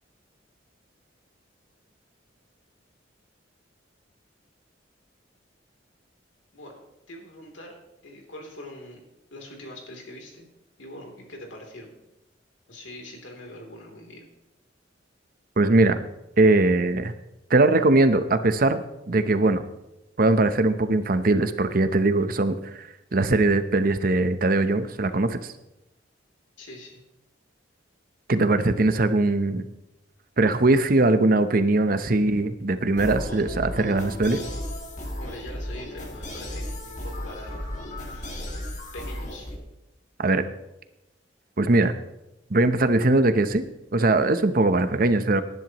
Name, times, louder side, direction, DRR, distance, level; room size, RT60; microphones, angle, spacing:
voice 1, 7.1-7.8 8.0-9.0 9.3-10.5 10.8-11.9 12.7-14.3 26.6-27.0 35.2-38.5 38.9-39.5, left 1 dB, 85° left, 1 dB, 3.2 m, -43 dB
voice 2, 15.6-16.0 16.4-17.1 17.5-19.6 20.2-25.5 28.3-29.7 30.4-34.4 40.2-40.4 41.6-41.9 42.5-43.7 43.9-45.4, right 2 dB, 50° right, 10 dB, 0.8 m, -21 dB
sound 1, 32.9-39.6, left 1 dB, 40° left, 2.1 m, -34 dB
19.0 x 10.5 x 3.0 m, 0.93 s
head